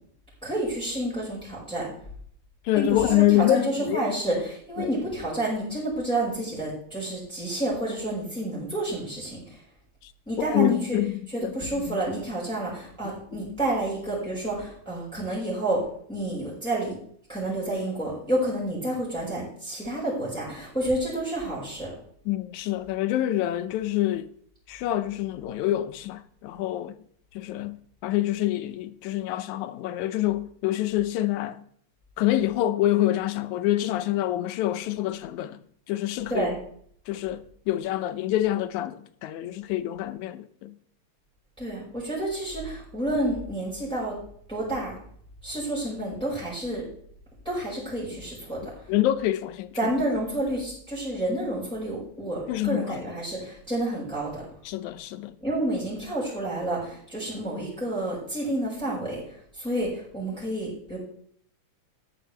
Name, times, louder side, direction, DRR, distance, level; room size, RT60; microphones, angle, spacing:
voice 1, 0.4-1.9 2.7-9.6 10.3-11.0 11.3-17.0 17.3-21.9 36.3-36.6 41.6-44.2 44.5-45.0 45.4-46.8 47.4-48.7 49.8-54.4 55.4-61.0, right 1 dB, ahead, 5.2 m, -29 dB
voice 2, 2.7-4.2 4.8-4.9 10.0-10.1 10.4-12.0 13.3-13.4 22.3-24.3 24.7-27.0 27.3-27.8 28.0-31.6 32.2-35.6 35.9-36.5 37.1-40.7 48.9-49.8 52.5-53.0 54.7-55.4, left 14 dB, 80° left, 2.1 m, -26 dB
14.0 x 10.5 x 3.4 m
omnidirectional pair, 3.4 m